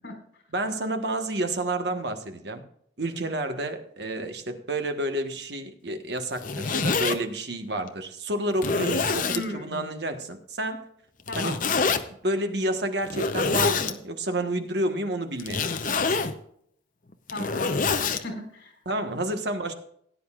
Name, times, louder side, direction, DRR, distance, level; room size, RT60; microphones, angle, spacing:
voice 1, 0.5-2.6 3.0-10.9 11.3-11.6 12.2-16.2 18.8-19.7, right 1 dB, 65° right, 6 dB, 1.3 m, -30 dB
Zipper (clothing), 6.2-7.2 7.9-8.0 8.6-9.4 11.3-12.0 13.0-13.9 15.4-16.3 17.1-18.2, left 4 dB, 45° left, 0.7 m, -26 dB
voice 2, 9.2-9.8 11.3-11.6 17.3-18.8, left 2 dB, 75° left, 2 dB, 4.3 m, -36 dB
18.0 x 9.5 x 2.5 m, 0.67 s
head